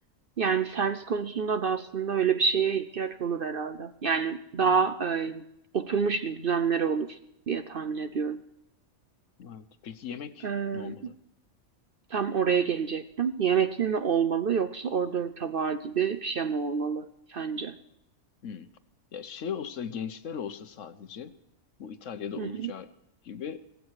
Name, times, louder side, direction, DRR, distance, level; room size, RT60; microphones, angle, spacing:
voice 1, 0.4-5.4 5.7-7.2 7.5-8.4 10.4-11.0 12.1-17.7 22.4-22.7, right 6 dB, 50° right, 10 dB, 0.7 m, -28 dB
voice 2, 9.4-11.1 18.4-18.7 19.1-21.3 21.8-22.9 23.2-23.6, left 7 dB, 65° left, 12 dB, 1.2 m, -38 dB
16.5 x 16.0 x 4.7 m, 0.80 s
omnidirectional pair, 1.4 m